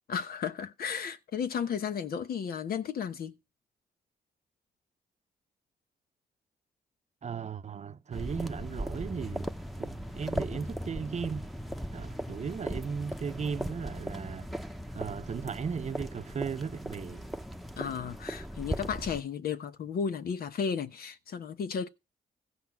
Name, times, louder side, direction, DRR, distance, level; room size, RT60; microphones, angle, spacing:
voice 1, 0.1-3.3 17.8-21.9, left 7 dB, 65° left, 1.1 m, -34 dB
voice 2, 7.2-9.5 9.8-11.4 11.9-14.5 14.9-17.2, right 6 dB, 45° right, 0.7 m, -36 dB
sound 1, 8.1-19.2, equal, ahead, 1.0 m, -38 dB
15.0 x 5.8 x 5.7 m
supercardioid pair, 55°, 17 cm